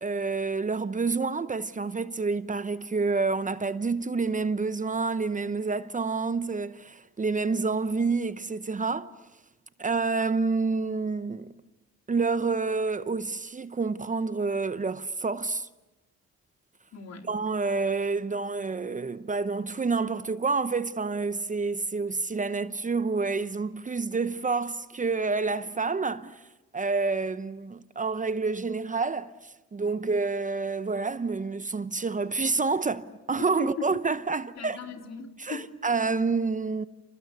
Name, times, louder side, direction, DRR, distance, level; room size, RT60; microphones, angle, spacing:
voice 1, 0.0-9.1 9.8-11.5 12.1-15.7 17.3-26.4 26.7-29.3 29.7-34.8 35.4-36.8, right 4 dB, 25° right, 0.8 m, -28 dB
voice 2, 16.9-17.3 33.4-33.9 34.6-35.7, left 6 dB, 60° left, 3.7 m, -38 dB
29.0 x 28.5 x 6.8 m
cardioid pair, 90°, 30 cm